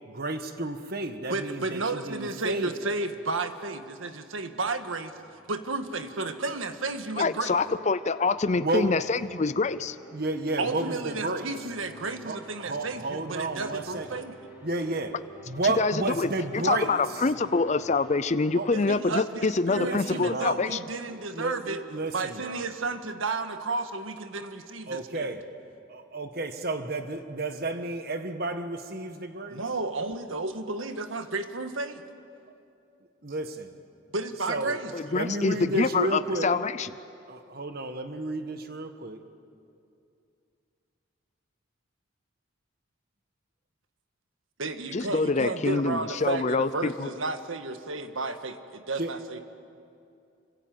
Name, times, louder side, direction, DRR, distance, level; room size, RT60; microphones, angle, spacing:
voice 1, 0.1-2.7 8.6-8.9 10.1-11.5 12.2-14.1 14.6-15.2 15.5-17.0 18.5-18.7 19.8-20.6 21.1-22.6 24.9-25.5 25.9-29.6 33.2-33.7 34.5-34.8 35.1-36.5 37.3-39.2 49.0-49.1, right 2 dB, 50° right, 8 dB, 1.5 m, -31 dB
voice 2, 1.3-5.1 5.5-7.6 10.6-14.4 18.7-21.8 22.1-25.3 29.5-32.0 34.1-34.9 44.6-49.4, right 3 dB, 90° right, 8 dB, 1.6 m, -32 dB
sound 1, 4.5-18.3, right 1 dB, 10° right, 6.1 m, -52 dB
voice 3, 7.2-10.0 15.8-16.3 16.6-20.8 34.9-36.9 44.9-47.1, left 3 dB, 35° left, 13 dB, 0.5 m, -26 dB
27.5 x 25.5 x 7.8 m, 2.5 s
head